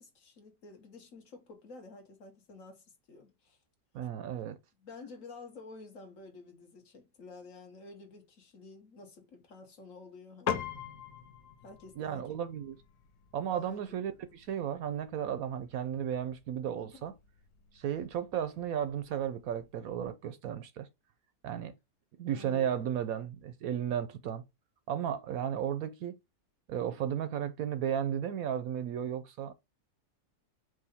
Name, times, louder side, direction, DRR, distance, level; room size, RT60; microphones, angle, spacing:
voice 1, 0.0-3.6 4.8-10.6 11.6-12.4 13.5-14.2 16.8-17.1 22.3-22.9, left 3 dB, 55° left, 1.6 m, -51 dB
voice 2, 3.9-4.6 12.0-12.8 13.3-17.1 17.7-20.9 21.4-21.7 22.2-24.4 24.9-26.1 26.7-29.5, right 9 dB, 70° right, 0.9 m, -34 dB
Piano, 10.5-20.1, left 8 dB, 75° left, 1.4 m, -44 dB
4.9 x 2.6 x 4.1 m
omnidirectional pair, 1.7 m